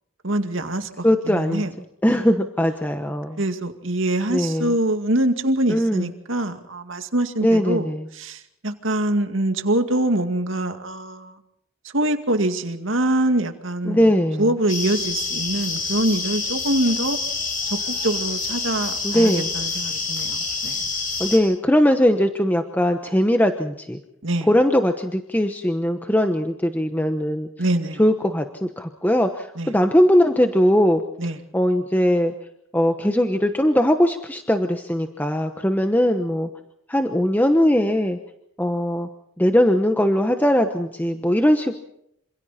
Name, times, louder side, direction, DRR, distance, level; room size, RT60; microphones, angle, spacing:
voice 1, 0.2-1.7 2.1-2.2 3.4-7.9 8.1-11.4 11.9-14.0 14.4-17.2 17.7-20.8 24.2-24.5 27.6-28.0 29.6-29.7 31.2-31.4, right 1 dB, 65° right, 7 dB, 2.3 m, -24 dB
voice 2, 1.0-1.6 2.0-3.4 4.3-4.7 5.7-6.1 7.4-8.1 13.9-14.5 19.0-19.5 21.2-24.0 24.4-27.5 28.0-31.0 31.5-32.3 32.7-36.5 36.9-38.2 38.6-39.1 39.4-41.8, equal, 10° left, 6 dB, 1.0 m, -20 dB
sound 1, 14.7-21.4, left 4 dB, 40° left, 6.8 m, -27 dB
27.0 x 27.0 x 4.3 m, 0.75 s
head